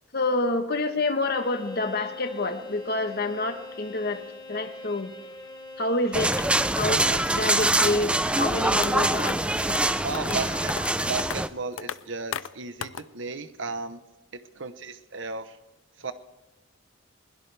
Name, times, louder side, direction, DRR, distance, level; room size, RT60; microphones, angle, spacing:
voice 1, 0.1-4.2 4.5-5.1 5.8-6.5 6.8-8.1 8.4-9.4 10.2-11.1, left 2 dB, 50° left, 7 dB, 1.2 m, -28 dB
Bowed string instrument, 1.2-6.9, left 3 dB, 20° left, 1.0 m, -43 dB
sound 1, 6.1-11.5, right 1 dB, 5° right, 0.4 m, -24 dB
sound 2, 8.4-8.5 8.8-8.9 9.2-9.3 9.7-9.8 10.1-10.4 10.7-10.9 11.2-11.4 11.8-12.0 12.3-12.5 12.8-13.0, left 8 dB, 70° left, 0.4 m, -33 dB
voice 2, 10.0-10.7 11.0-14.0 14.3-15.6 16.0-16.1, right 4 dB, 65° right, 11 dB, 0.9 m, -34 dB
21.5 x 16.5 x 3.4 m, 1.2 s
head